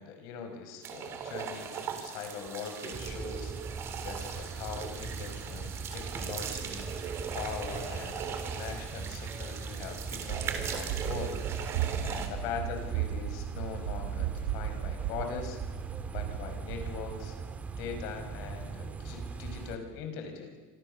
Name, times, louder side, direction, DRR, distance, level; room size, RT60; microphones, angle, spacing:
voice 1, 0.0-3.5 4.0-6.9 7.3-11.4 12.0-15.6 16.1-17.4 17.8-20.6, left 6 dB, 65° left, 6 dB, 5.5 m, -41 dB
sound 1, 0.8-12.3, right 7 dB, 40° right, 3.6 m, -39 dB
sound 2, 2.9-19.8, right 4 dB, 20° right, 2.0 m, -40 dB
Run, 10.2-17.2, right 11 dB, 75° right, 2.1 m, -36 dB
27.0 x 26.0 x 6.9 m, 1.4 s
supercardioid pair, 130°, 7 cm